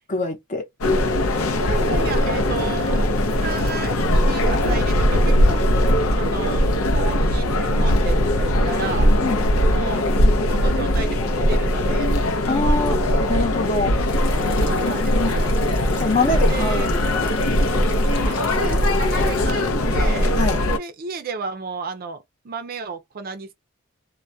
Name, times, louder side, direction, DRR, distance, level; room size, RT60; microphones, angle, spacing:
voice 1, 0.1-0.7 9.2-9.4 12.5-13.0 13.3-13.9 16.0-17.4 20.4-20.6, left 3 dB, 35° left, 0.7 m, -24 dB
sound 1, 0.8-20.8, left 1 dB, 85° left, 0.5 m, -20 dB
voice 2, 1.6-3.1 3.4-5.7 6.2-9.1 9.7-10.1 10.5-12.1 14.6-15.6 16.1-16.9 18.2-19.6 19.9-20.4 20.8-23.5, right 4 dB, 45° right, 0.5 m, -33 dB
sound 2, 14.1-19.5, left 2 dB, 60° left, 0.9 m, -38 dB
2.2 x 2.1 x 2.6 m
head